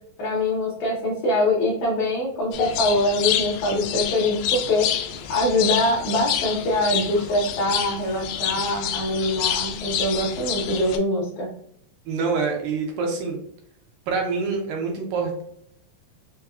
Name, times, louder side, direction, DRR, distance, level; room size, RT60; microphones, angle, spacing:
voice 1, 0.2-4.9 5.3-11.5, left 1 dB, 70° left, -4 dB, 1.8 m, -23 dB
sound 1, 2.5-11.0, left 10 dB, 90° left, 1.8 m, -28 dB
voice 2, 12.1-13.4 14.1-15.4, right 4 dB, 75° right, 1 dB, 2.1 m, -26 dB
5.6 x 2.2 x 2.3 m, 0.68 s
omnidirectional pair, 4.2 m